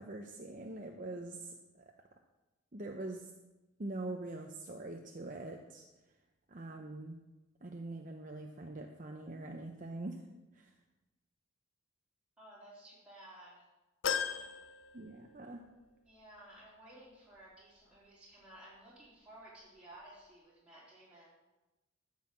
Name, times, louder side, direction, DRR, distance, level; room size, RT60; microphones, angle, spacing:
voice 1, 0.0-1.5 2.7-3.3 3.8-5.8 6.5-7.2 7.6-10.2 10.5-10.7 14.9-15.6, right 2 dB, 40° right, 3 dB, 0.8 m, -43 dB
voice 2, 12.4-13.7 14.2-14.6 16.0-21.3, right 1 dB, 5° right, -8 dB, 3.4 m, -56 dB
sound 1, 14.0-15.7 16.1-16.2 17.4-17.5, left 7 dB, 75° left, 0.8 m, -37 dB
13.5 x 5.7 x 7.5 m, 1.1 s
head